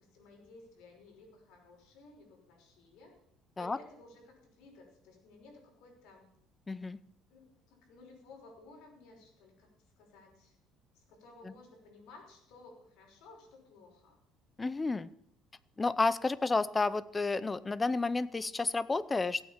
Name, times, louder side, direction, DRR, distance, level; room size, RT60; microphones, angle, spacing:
voice 1, 0.0-3.2 3.6-6.3 7.3-9.7 10.0-10.5 10.9-14.2, left 3 dB, 75° left, 1 dB, 5.8 m, -56 dB
voice 2, 6.7-7.0 11.4-11.5 14.6-15.1 15.8-19.4, left 3 dB, 15° left, 17 dB, 0.6 m, -31 dB
16.5 x 8.9 x 7.3 m, 0.71 s
cardioid pair, 150°, 0 cm